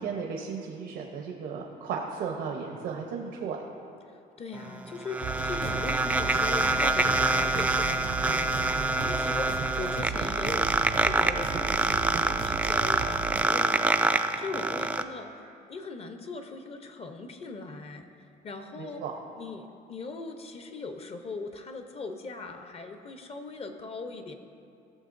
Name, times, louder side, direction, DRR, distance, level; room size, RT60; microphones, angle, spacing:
voice 1, 0.0-3.6 18.7-19.1, right 6 dB, 85° right, 1 dB, 0.9 m, -35 dB
voice 2, 4.1-15.4 15.7-19.0 19.4-24.3, left 3 dB, 35° left, 6 dB, 0.8 m, -40 dB
sound 1, 4.6-15.0, right 2 dB, 10° right, 0.3 m, -26 dB
sound 2, 5.2-13.4, right 8 dB, 55° right, 0.6 m, -36 dB
16.5 x 6.7 x 2.6 m, 2.5 s
cardioid pair, 110°, 17 cm